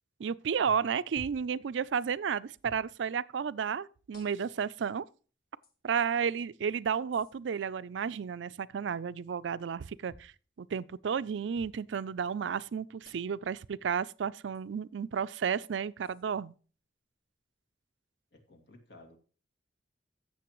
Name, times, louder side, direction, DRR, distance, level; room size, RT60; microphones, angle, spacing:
voice 1, 0.2-5.0 5.8-10.3 10.6-16.5, right 7 dB, 90° right, 0.4 m, -32 dB
sound 1, 1.2-1.5 2.6-2.9 4.1-4.6 5.6-5.7 7.1-7.3 10.1-10.3 11.5-11.8 13.0-13.4 14.5-14.6 16.0-16.2, equal, 55° left, 1.6 m, -53 dB
voice 2, 18.3-19.2, left 1 dB, 70° left, 2.3 m, -54 dB
15.5 x 6.6 x 3.0 m
head